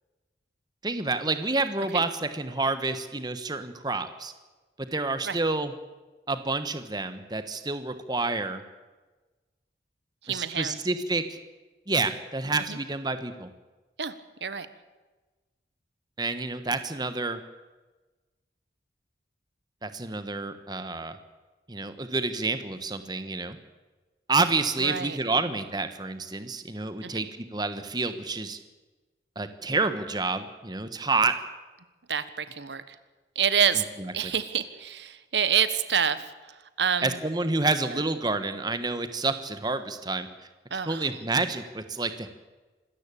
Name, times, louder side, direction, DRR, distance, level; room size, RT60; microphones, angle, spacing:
voice 1, 0.8-4.3 4.9-5.7 6.3-8.6 10.3-11.4 11.9-13.5 16.2-17.4 19.8-21.2 21.7-23.6 24.3-27.3 27.5-28.6 29.3-31.3 34.0-34.1 37.0-40.3 40.7-42.3, right 3 dB, 25° right, 10 dB, 1.3 m, -29 dB
voice 2, 10.2-10.8 12.7-12.8 14.0-14.1 14.4-14.7 24.8-25.2 27.0-27.2 32.1-32.9 33.3-33.8 34.1-36.3 36.8-37.2 37.9-38.0 40.7-41.1, right 7 dB, 80° right, 13 dB, 1.3 m, -27 dB
26.0 x 14.0 x 8.6 m, 1.2 s
head